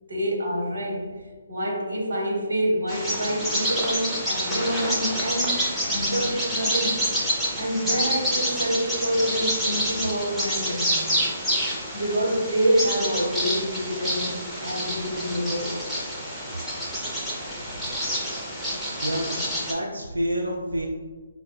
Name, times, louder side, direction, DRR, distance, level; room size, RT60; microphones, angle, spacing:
voice 1, 0.1-1.0 1.5-7.0 7.6-11.0 11.9-15.8, equal, 65° right, -2 dB, 0.9 m, -27 dB
Bird vocalization bird call bird song, 2.9-19.7, equal, ahead, 0.5 m, -28 dB
voice 2, 17.6-17.9 19.0-20.9, equal, 90° right, -2 dB, 0.3 m, -29 dB
4.6 x 2.1 x 2.2 m, 1.4 s
figure-of-eight pair, 140°, 0 cm